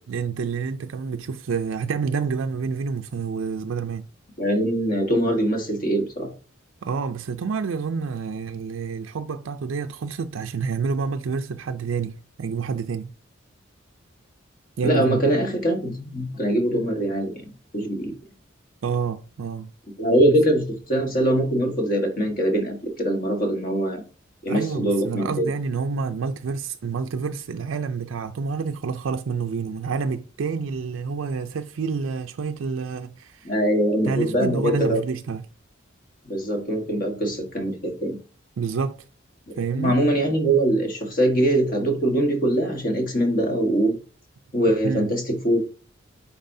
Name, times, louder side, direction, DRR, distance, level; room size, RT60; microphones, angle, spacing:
voice 1, 0.1-4.1 6.8-13.1 14.8-15.2 18.8-19.7 24.5-33.5 34.0-35.4 38.6-39.0 39.6-40.0 44.6-45.1, right 5 dB, 90° right, 0.4 m, -28 dB
voice 2, 4.4-6.3 14.8-17.4 17.7-18.1 20.0-24.0 24.4-25.5 33.4-35.0 36.2-38.2 39.5-43.9 44.5-45.6, right 1 dB, 45° left, 1.5 m, -22 dB
9.3 x 4.2 x 2.7 m
head